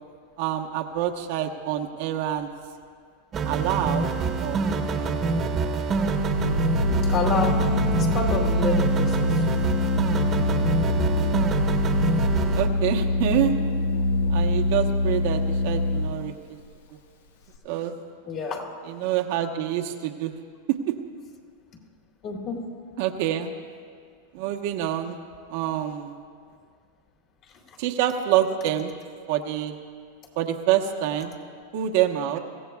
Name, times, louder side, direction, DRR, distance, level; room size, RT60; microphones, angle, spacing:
voice 1, 0.4-2.5 3.4-4.1 4.4-5.2 12.5-13.5 14.3-16.3 17.6-17.9 19.0-20.3 20.7-21.0 23.0-23.5 24.3-25.2 25.5-26.2 27.8-28.9 29.3-29.8 30.4-31.3 31.7-32.4, right 11 dB, 60° right, 3 dB, 1.1 m, -26 dB
sound 1, 3.3-12.7, right 4 dB, 30° right, 1.2 m, -26 dB
Organ, 6.0-16.4, left 2 dB, 80° left, 1.1 m, -24 dB
voice 2, 7.0-9.5 12.3-12.4 18.2-18.7 22.2-22.7, left 4 dB, 40° left, 1 dB, 2.5 m, -29 dB
24.0 x 15.5 x 2.4 m, 2.1 s
hypercardioid pair, 125°, 0 cm